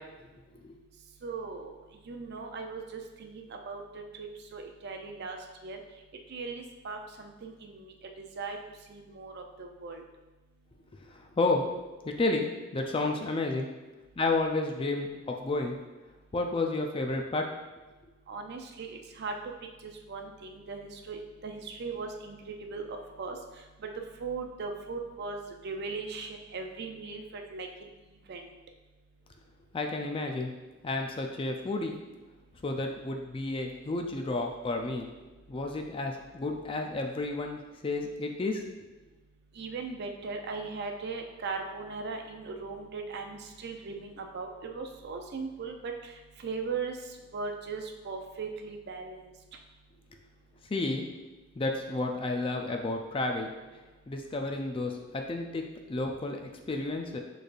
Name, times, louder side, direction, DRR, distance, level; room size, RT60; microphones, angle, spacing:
voice 1, 1.2-1.7 2.1-3.8 4.2-5.4 5.6-5.8 6.3-8.6 8.9-10.0 18.3-19.3 19.8-23.4 24.2-27.7 28.3-28.5 39.6-46.1 46.4-47.0 47.3-49.2, right 4 dB, 55° right, 4 dB, 0.5 m, -38 dB
voice 2, 11.0-11.6 12.0-12.5 12.7-13.7 14.2-15.8 16.3-17.5 29.7-30.5 30.8-32.0 32.6-35.1 35.5-38.6 50.7-51.0 51.6-53.5 54.1-55.6 55.9-57.2, left 2 dB, 25° left, 3 dB, 0.4 m, -31 dB
6.4 x 3.3 x 2.5 m, 1.2 s
head